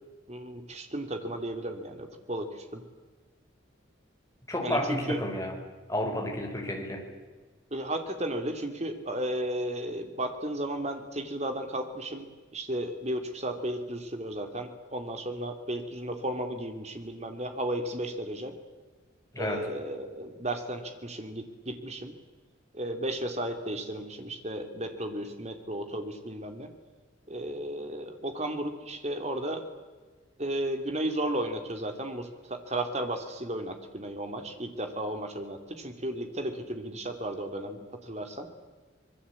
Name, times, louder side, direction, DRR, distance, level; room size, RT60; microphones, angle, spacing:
voice 1, 0.3-2.8 4.6-5.2 7.7-12.3 12.5-18.5 19.4-22.1 22.7-26.7 27.3-29.6 30.4-38.5, right 1 dB, 35° right, 6 dB, 2.8 m, -34 dB
voice 2, 4.5-5.5 5.9-7.0 19.3-19.6, left 1 dB, 15° left, 1 dB, 5.2 m, -31 dB
26.0 x 21.5 x 8.5 m, 1.4 s
head